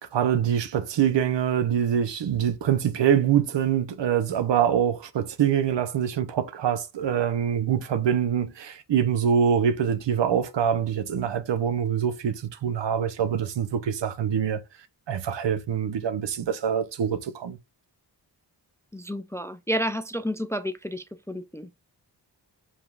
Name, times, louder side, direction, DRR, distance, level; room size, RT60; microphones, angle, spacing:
voice 1, 0.0-14.6 15.1-17.6, right 8 dB, 80° right, 0.7 m, -24 dB
voice 2, 18.9-21.7, equal, 5° left, 0.3 m, -30 dB
4.9 x 3.6 x 2.4 m
wide cardioid pair, 80°, 42 cm